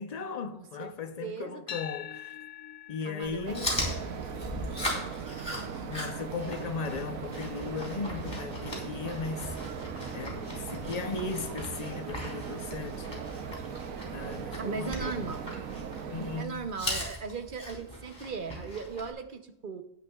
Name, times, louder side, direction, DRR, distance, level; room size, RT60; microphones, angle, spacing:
voice 1, 0.0-2.3 2.9-3.8 5.8-9.6 10.1-13.3 14.1-15.3 16.1-16.6, left 5 dB, 35° left, 0.8 m, -37 dB
voice 2, 0.5-1.8 3.0-4.2 14.6-15.6 16.1-19.8, right 5 dB, 45° right, 0.9 m, -38 dB
sound 1, 1.7-9.9, left 10 dB, 85° left, 1.1 m, -48 dB
Chewing mastication, 3.2-19.1, left 1 dB, 20° left, 3.3 m, -39 dB
sound 2, 3.4-16.5, right 7 dB, 85° right, 1.2 m, -39 dB
17.0 x 10.5 x 2.4 m
omnidirectional pair, 1.4 m